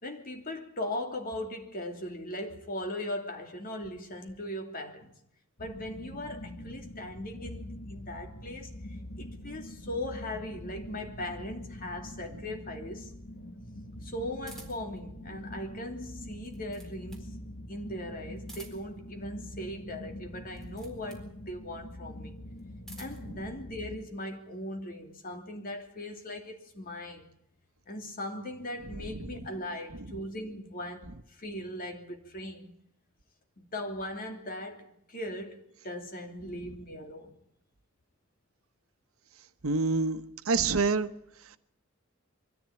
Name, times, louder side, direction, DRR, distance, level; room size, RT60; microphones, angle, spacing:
voice 1, 0.0-5.1 5.6-13.1 14.0-17.4 17.7-22.4 23.0-27.3 27.9-32.7 33.6-37.4, left 1 dB, 45° left, 2.9 m, -39 dB
sound 1, 5.6-24.0, left 1 dB, 65° left, 1.7 m, -44 dB
sound 2, 14.4-15.0 16.3-17.3 18.4-19.0 20.5-21.3 22.5-23.3, right 2 dB, ahead, 4.2 m, -51 dB
voice 2, 39.6-41.1, right 4 dB, 80° right, 1.1 m, -27 dB
23.0 x 14.0 x 9.0 m
head